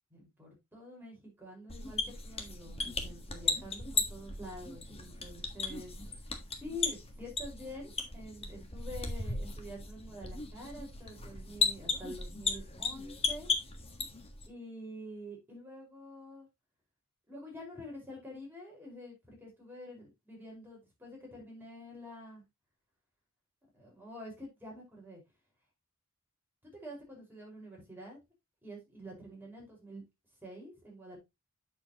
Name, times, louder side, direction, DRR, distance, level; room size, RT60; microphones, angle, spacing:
voice 1, 0.1-6.1 6.6-13.5 14.5-16.5 17.3-22.4 23.7-25.2 26.6-28.2 28.6-30.0 30.4-31.2, left 1 dB, 10° right, 5.0 m, -47 dB
sound 1, 1.7-14.5, left 4 dB, 25° left, 1.5 m, -36 dB
8.1 x 7.2 x 2.9 m
head